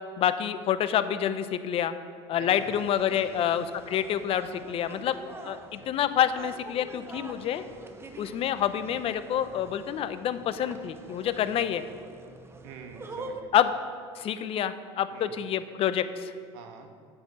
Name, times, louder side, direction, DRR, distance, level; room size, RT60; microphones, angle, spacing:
voice 1, 0.2-1.9 2.3-5.2 5.4-7.6 8.2-11.8 13.5-13.7 14.2-16.3, left 10 dB, 45° left, 12 dB, 0.6 m, -27 dB
voice 2, 2.3-3.4 12.6-13.5 15.1-15.4 16.5-16.9, right 5 dB, 75° right, 5 dB, 1.3 m, -45 dB
sound 1, 2.6-13.4, right 2 dB, 20° right, 0.9 m, -46 dB
8.5 x 6.7 x 6.5 m, 2.1 s
supercardioid pair, 95°, 14 cm